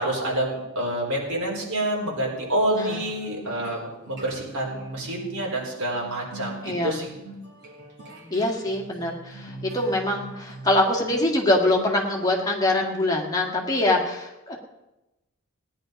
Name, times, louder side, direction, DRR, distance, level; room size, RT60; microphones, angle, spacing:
voice 1, 0.0-7.1, right 1 dB, 75° right, -2 dB, 4.3 m, -27 dB
sound 1, 2.9-12.5, right 1 dB, 50° right, 3.0 m, -43 dB
voice 2, 6.6-7.0 8.3-14.6, left 1 dB, 15° left, 0 dB, 1.9 m, -24 dB
16.5 x 10.5 x 5.3 m, 1.0 s
head